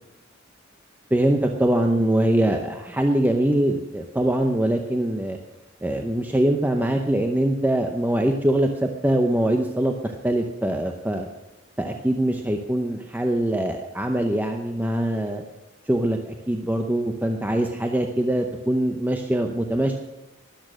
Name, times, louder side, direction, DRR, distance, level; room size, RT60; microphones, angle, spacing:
voice 1, 1.1-5.4 5.8-11.3 11.8-15.4 15.9-20.0, right 1 dB, 10° right, 4 dB, 0.7 m, -23 dB
13.0 x 10.5 x 6.2 m, 0.97 s
head